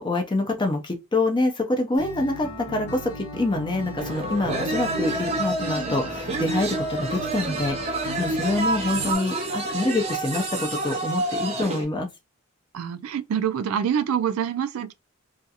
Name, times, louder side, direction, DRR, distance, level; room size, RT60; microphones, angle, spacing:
voice 1, 0.0-12.1, left 2 dB, 20° left, 0.4 m, -26 dB
Acoustic guitar, 2.0-9.1, equal, 80° left, 1.1 m, -37 dB
sound 1, 4.0-11.8, right 2 dB, 30° right, 0.6 m, -28 dB
voice 2, 12.7-14.9, right 8 dB, 75° right, 0.3 m, -26 dB
2.4 x 2.3 x 2.7 m
head